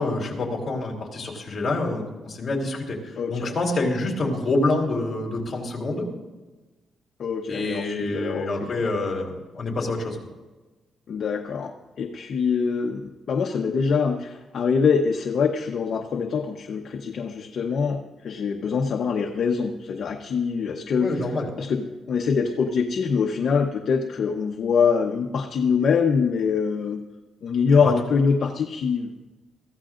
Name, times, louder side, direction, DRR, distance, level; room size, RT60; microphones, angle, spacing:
voice 1, 0.0-3.0 3.3-6.1 7.5-10.2 21.0-21.5 27.7-27.9, left 2 dB, 30° left, -1 dB, 3.4 m, -26 dB
voice 2, 3.2-3.6 7.2-8.9 11.1-11.7 12.0-21.2 21.6-27.0 27.4-29.2, left 5 dB, 55° left, 2 dB, 0.9 m, -24 dB
23.0 x 15.0 x 2.5 m, 1.2 s
cardioid pair, 145°, 0 cm